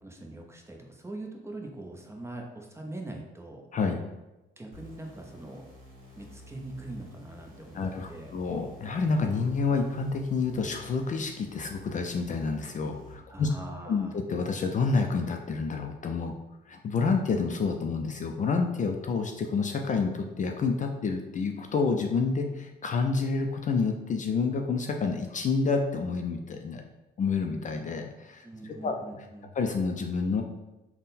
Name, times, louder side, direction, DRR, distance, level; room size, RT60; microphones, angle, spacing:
voice 1, 0.0-3.6 4.6-5.7 6.1-8.3 13.3-14.2 28.4-29.5, right 2 dB, 15° right, 1 dB, 0.6 m, -42 dB
sound 1, 4.7-13.2, left 1 dB, 40° right, 1.4 m, -51 dB
voice 2, 7.7-13.5 13.9-16.4 16.7-26.8 27.2-28.5 28.8-29.0 29.6-30.4, left 4 dB, 40° left, 4 dB, 0.4 m, -28 dB
3.6 x 2.1 x 4.1 m, 1.0 s
cardioid pair, 90°, 20 cm